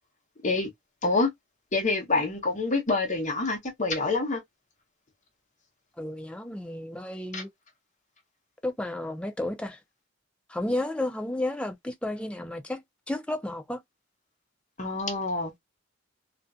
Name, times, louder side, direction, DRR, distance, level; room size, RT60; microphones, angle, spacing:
voice 1, 1.7-4.4 7.3-7.4 14.8-15.5, left 3 dB, 35° left, 0.9 m, -26 dB
voice 2, 6.0-7.5 8.6-9.8 10.5-13.8, left 1 dB, 5° left, 0.4 m, -32 dB
2.5 x 2.1 x 2.4 m
head